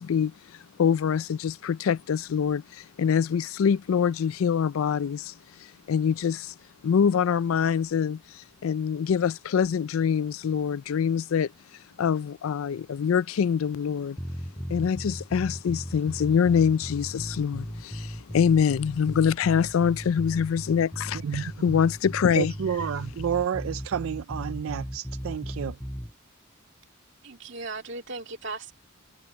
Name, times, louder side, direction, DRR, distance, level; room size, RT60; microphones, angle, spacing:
voice 1, 0.0-5.3 5.6-6.5 6.8-11.5 12.0-14.2 14.7-22.5, left 7 dB, 80° left, 0.4 m, -25 dB
sound 1, 14.2-26.1, equal, 5° left, 5.1 m, -37 dB
voice 2, 21.1-21.8 22.4-25.8, right 8 dB, 75° right, 0.4 m, -30 dB
voice 3, 27.2-28.7, right 3 dB, 60° right, 2.4 m, -37 dB
head